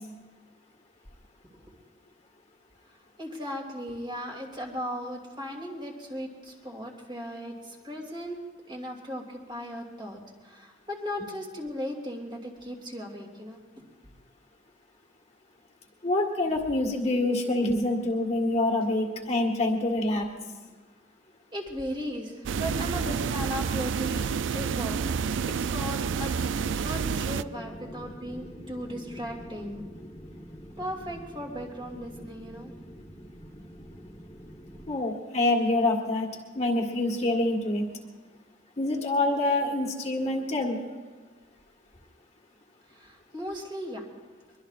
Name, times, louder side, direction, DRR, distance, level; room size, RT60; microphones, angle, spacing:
voice 1, 3.2-8.4 8.7-13.6 21.5-24.3 24.5-25.0 25.5-26.3 26.8-29.8 30.8-32.7 42.9-44.1, equal, 25° right, 0 dB, 2.6 m, -37 dB
voice 2, 16.0-20.3 34.9-36.3 36.5-37.8 38.8-40.8, left 2 dB, 35° left, 1 dB, 1.6 m, -26 dB
sound 1, 22.5-27.4, right 6 dB, 70° right, 0.4 m, -29 dB
sound 2, 26.5-35.0, equal, 15° left, 1.2 m, -45 dB
23.0 x 23.0 x 2.5 m, 1.4 s
head